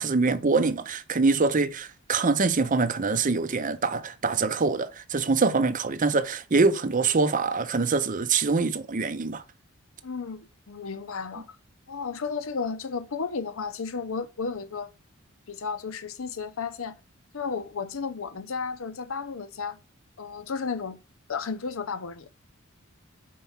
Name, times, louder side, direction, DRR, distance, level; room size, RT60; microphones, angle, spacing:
voice 1, 0.0-9.4, right 4 dB, 40° right, 0.6 m, -24 dB
voice 2, 10.0-11.6 11.9-14.9 15.5-17.0 17.3-19.8 20.2-21.0 21.3-22.3, left 5 dB, 80° left, 0.7 m, -33 dB
4.6 x 4.6 x 5.6 m
head